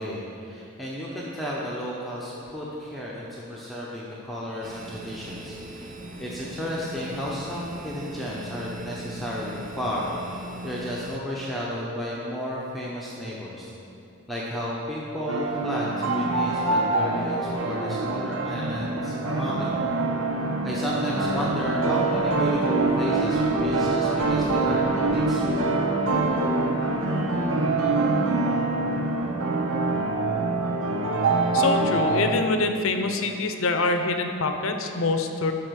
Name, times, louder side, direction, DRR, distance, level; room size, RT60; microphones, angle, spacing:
voice 1, 0.0-5.9 6.2-13.7 14.3-19.7 20.6-25.7, equal, ahead, -6 dB, 0.8 m, -33 dB
sound 1, 4.6-11.2, right 1 dB, 35° right, 0.6 m, -39 dB
sound 2, 15.3-32.3, right 2 dB, 70° right, 0.9 m, -24 dB
voice 2, 31.5-35.5, left 3 dB, 65° left, 6 dB, 0.7 m, -25 dB
12.0 x 4.1 x 6.3 m, 2.7 s
head